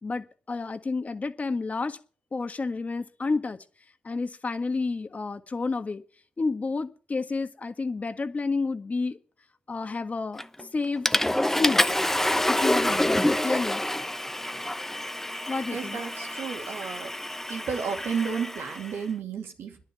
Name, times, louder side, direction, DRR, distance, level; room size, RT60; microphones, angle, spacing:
voice 1, 0.0-2.0 2.3-3.6 4.0-6.0 6.4-9.2 9.7-10.4 10.7-11.1 11.5-11.9 12.5-13.8 15.5-16.1, left 3 dB, 40° left, 1.6 m, -30 dB
Water / Toilet flush, 10.4-10.6 11.1-18.9, left 1 dB, 10° left, 0.9 m, -27 dB
voice 2, 15.7-17.1 17.5-19.9, right 6 dB, 80° right, 2.6 m, -32 dB
10.5 x 9.5 x 8.3 m
supercardioid pair, 50°, 4 cm